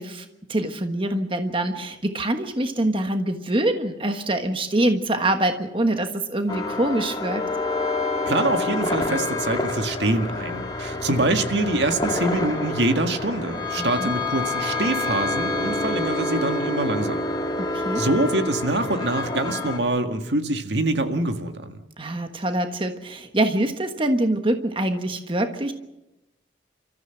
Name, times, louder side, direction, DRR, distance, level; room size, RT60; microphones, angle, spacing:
voice 1, 0.0-7.4 13.8-14.1 17.6-18.0 22.0-25.7, right 1 dB, 30° right, 6 dB, 1.4 m, -25 dB
sound 1, 6.5-19.8, left 2 dB, 20° left, 2.3 m, -27 dB
voice 2, 8.3-17.2 18.0-21.8, right 2 dB, 70° right, 7 dB, 1.8 m, -25 dB
29.5 x 14.5 x 7.9 m, 0.96 s
head